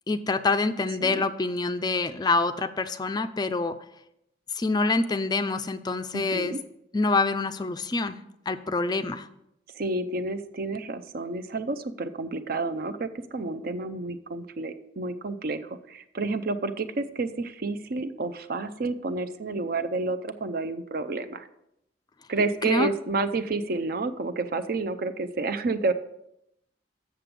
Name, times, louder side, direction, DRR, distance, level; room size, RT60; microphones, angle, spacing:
voice 1, 0.1-3.7 4.6-6.5 6.9-8.2 8.5-9.3 22.6-22.9, left 3 dB, 25° left, 10 dB, 0.4 m, -26 dB
voice 2, 6.1-6.6 9.7-21.5 22.3-25.9, right 3 dB, 55° right, 11 dB, 0.5 m, -30 dB
7.4 x 6.8 x 5.2 m, 0.81 s
head